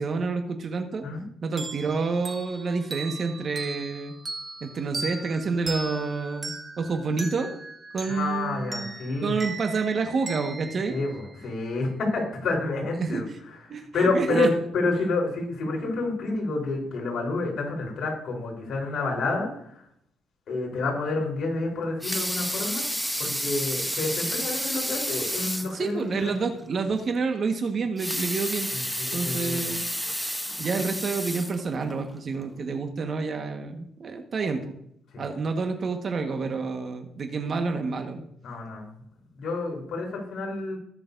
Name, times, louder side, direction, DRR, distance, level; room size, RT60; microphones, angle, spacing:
voice 1, 0.0-1.1 1.4-4.1 4.6-7.5 7.9-8.9 9.2-11.0 13.0-13.4 13.7-14.5 25.7-28.7 29.1-29.9 30.6-34.8 35.2-38.2, right 4 dB, 50° right, 5 dB, 1.5 m, -28 dB
sound 1, 1.6-11.8, right 3 dB, 25° right, 2.5 m, -39 dB
voice 2, 8.1-9.4 10.9-19.9 20.5-22.9 23.2-26.3 28.7-29.8 35.1-35.3 38.4-38.9 39.3-40.8, left 3 dB, 65° left, -1 dB, 4.1 m, -29 dB
Water tap faucet / Sink (filling or washing) / Liquid, 21.8-25.8 26.2-26.3 26.7-26.8 27.8-32.0 32.6-32.7, equal, ahead, 1.0 m, -30 dB
20.0 x 6.9 x 2.7 m, 0.72 s
cardioid pair, 90°, 0 cm